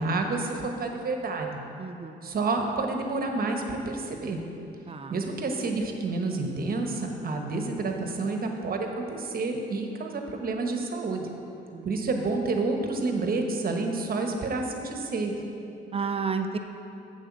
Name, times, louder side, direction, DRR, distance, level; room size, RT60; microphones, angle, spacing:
voice 1, 0.0-1.6 2.2-4.4 5.1-11.3 11.8-15.4, right 3 dB, 50° right, 3 dB, 1.2 m, -29 dB
voice 2, 1.8-2.2 4.9-5.2 11.7-11.9 15.9-16.6, right 5 dB, 30° right, 6 dB, 0.6 m, -31 dB
8.1 x 7.2 x 6.0 m, 2.8 s
cardioid pair, 90°, 20 cm